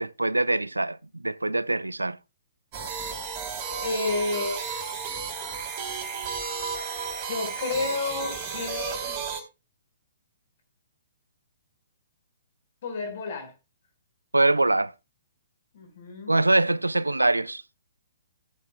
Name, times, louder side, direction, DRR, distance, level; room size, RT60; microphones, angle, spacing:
voice 1, 0.0-2.2 14.3-14.9 16.3-17.6, right 2 dB, 90° right, 0.4 m, -23 dB
sound 1, 2.7-9.4, right 5 dB, 35° right, 3.4 m, -33 dB
voice 2, 3.8-4.6 7.3-9.2 12.8-13.5 15.7-16.3, left 3 dB, 55° left, 4.7 m, -30 dB
17.0 x 8.7 x 2.3 m
figure-of-eight pair, 120°, 0 cm